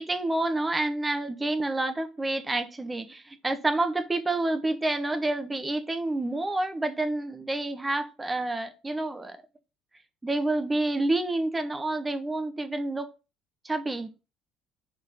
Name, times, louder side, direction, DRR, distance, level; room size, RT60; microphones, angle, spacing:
voice 1, 0.0-9.4 10.2-13.1 13.6-14.1, right 2 dB, 15° right, 1.2 m, -28 dB
5.8 x 4.2 x 5.1 m
figure-of-eight pair, 55°, 0 cm